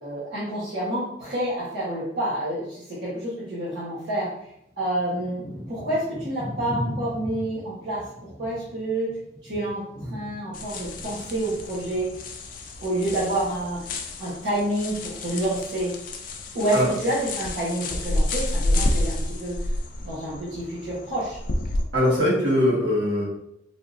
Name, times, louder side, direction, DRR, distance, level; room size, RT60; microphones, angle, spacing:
voice 1, 0.0-4.3 4.8-9.1 9.4-12.1 12.8-13.8 14.2-15.9 16.5-19.5 20.0-21.4, right 1 dB, 60° right, -10 dB, 1.0 m, -28 dB
Thunder / Rain, 3.7-3.8 4.4-14.0 14.3-15.1 15.7-16.0 16.3-17.1 17.7-17.8, equal, 15° right, 0.9 m, -39 dB
sound 1, 10.5-21.8, left 1 dB, 45° left, 0.4 m, -30 dB
voice 2, 21.9-23.2, left 1 dB, 80° right, -6 dB, 1.4 m, -21 dB
3.5 x 2.6 x 2.5 m, 0.77 s
head